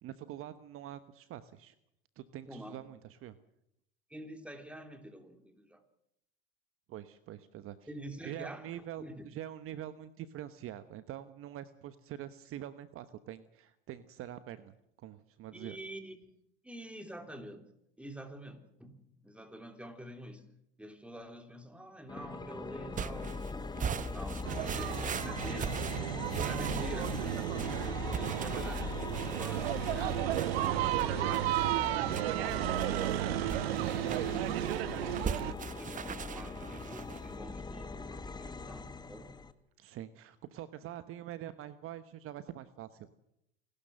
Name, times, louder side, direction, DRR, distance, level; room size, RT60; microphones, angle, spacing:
voice 1, 0.0-1.7 2.2-3.3 6.9-7.8 8.2-15.8 28.2-28.4 34.1-34.3 38.4-38.5 39.8-43.1, right 12 dB, 45° right, 13 dB, 1.1 m, -45 dB
voice 2, 2.4-2.8 4.1-5.8 7.9-9.3 15.5-16.2 16.6-17.7 18.0-20.5 20.8-23.4 23.9-25.8 26.4-27.2 28.2-29.0 29.3-33.1 33.8-34.6 35.0-39.3, right 1 dB, 5° right, 6 dB, 3.4 m, -47 dB
sound 1, 22.1-39.5, left 4 dB, 15° left, 1.3 m, -41 dB
sound 2, 22.9-37.3, right 7 dB, 25° right, 0.9 m, -41 dB
sound 3, 24.4-35.5, right 14 dB, 80° right, 1.0 m, -33 dB
27.5 x 12.5 x 7.6 m, 0.79 s
hypercardioid pair, 95°, 30 cm